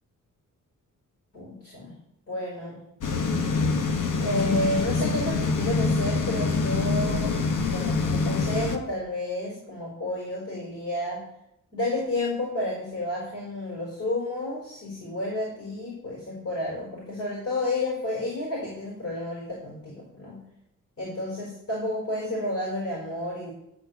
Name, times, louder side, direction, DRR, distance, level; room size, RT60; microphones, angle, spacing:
voice 1, 1.3-1.9 2.3-2.8 4.2-11.2 11.7-20.4 21.0-23.5, left 1 dB, 45° left, -3 dB, 5.2 m, -31 dB
sound 1, 3.0-8.8, left 4 dB, 75° left, 1.4 m, -25 dB
12.5 x 4.5 x 8.1 m, 0.80 s
cardioid pair, 110°, 32 cm